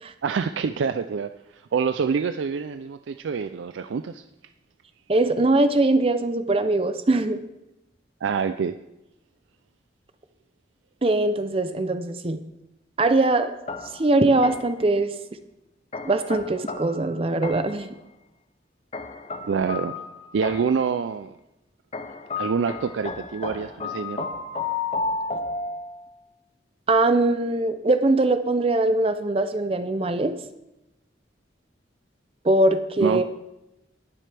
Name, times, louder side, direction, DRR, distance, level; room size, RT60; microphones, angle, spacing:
voice 1, 0.2-4.2 8.2-8.8 19.4-19.9 20.3-21.3 22.4-24.3 33.0-33.3, right 6 dB, 85° right, 10 dB, 0.4 m, -26 dB
voice 2, 5.1-7.4 11.0-12.4 13.0-13.5 13.9-15.1 16.0-17.9 26.9-30.3 32.4-33.2, right 2 dB, 30° right, 9 dB, 0.5 m, -21 dB
sound 1, 13.7-14.9 15.9-17.9 18.9-20.9 21.9-26.2, left 4 dB, 35° left, 0.6 m, -33 dB
19.5 x 7.5 x 3.4 m, 0.92 s
head